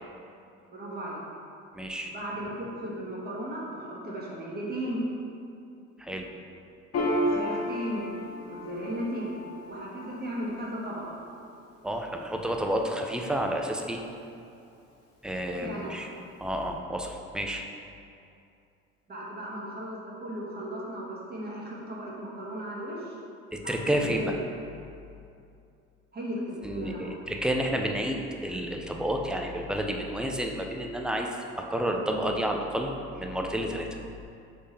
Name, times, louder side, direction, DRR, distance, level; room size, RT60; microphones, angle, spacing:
voice 1, 0.7-1.2 2.0-5.0 7.2-8.1 8.4-9.4 9.7-11.1 15.6-15.9 19.1-23.1 23.6-24.3 26.1-27.2, equal, 30° right, -5 dB, 1.3 m, -36 dB
voice 2, 1.7-2.1 6.0-6.3 11.8-14.0 15.2-16.1 16.4-17.6 23.5-24.4 26.6-33.9, right 1 dB, 5° right, 2 dB, 0.4 m, -30 dB
Piano, 6.9-13.9, left 1 dB, 50° left, 1.0 m, -34 dB
3.5 x 3.4 x 4.2 m, 2.6 s
supercardioid pair, 75°, 30 cm